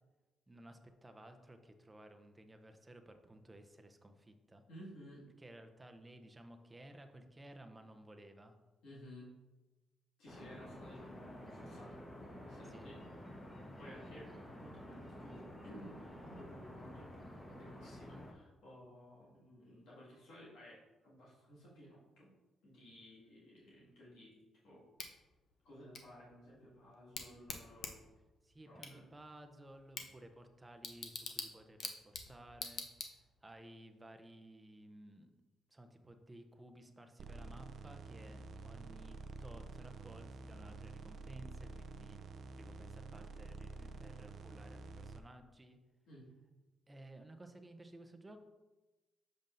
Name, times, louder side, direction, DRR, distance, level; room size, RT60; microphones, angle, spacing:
voice 1, 0.5-4.6 5.4-8.5 12.7-12.9 28.4-35.3 35.7-42.2 42.6-45.8 46.9-48.4, right 1 dB, 15° right, 6 dB, 0.6 m, -56 dB
voice 2, 4.7-5.3 8.8-9.3 10.2-12.0 12.5-13.5 13.8-14.3 14.6-17.1 17.5-22.3 22.6-24.4 24.6-24.9 25.6-28.0 28.7-29.0 46.1-46.3, equal, 85° left, -7 dB, 2.0 m, -56 dB
sound 1, 10.3-18.3, equal, 15° left, 1.1 m, -51 dB
Bicycle / Tick, 25.0-33.5, left 5 dB, 60° left, 0.7 m, -48 dB
sound 2, 37.2-45.2, right 3 dB, 60° right, 0.5 m, -49 dB
7.2 x 5.2 x 2.6 m, 1.1 s
cardioid pair, 90°, 0 cm